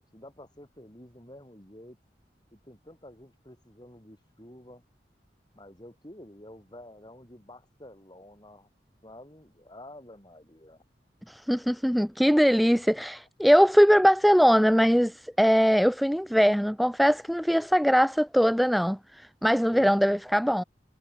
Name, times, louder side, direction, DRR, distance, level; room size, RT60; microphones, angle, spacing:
voice 1, 0.0-2.0 2.5-4.8 5.5-8.7 9.0-10.8 19.7-19.9, left 1 dB, 25° left, 7.0 m, -49 dB
voice 2, 11.3-20.6, equal, ahead, 0.3 m, -21 dB
head